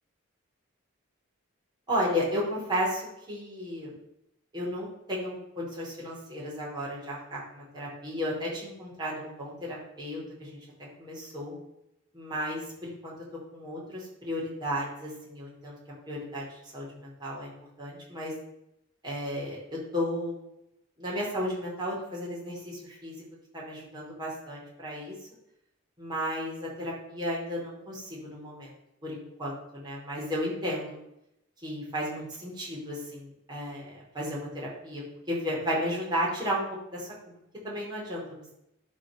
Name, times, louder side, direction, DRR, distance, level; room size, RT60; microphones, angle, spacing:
voice 1, 1.9-3.0 3.3-3.9 4.5-10.6 11.0-11.5 12.1-13.1 13.5-15.7 16.1-17.5 17.8-18.3 19.0-20.3 21.0-23.2 23.5-25.1 26.0-28.7 29.0-31.0 31.6-36.6 36.9-37.1 37.6-38.4, equal, 20° right, -6 dB, 4.7 m, -34 dB
12.0 x 5.1 x 7.0 m, 0.83 s
head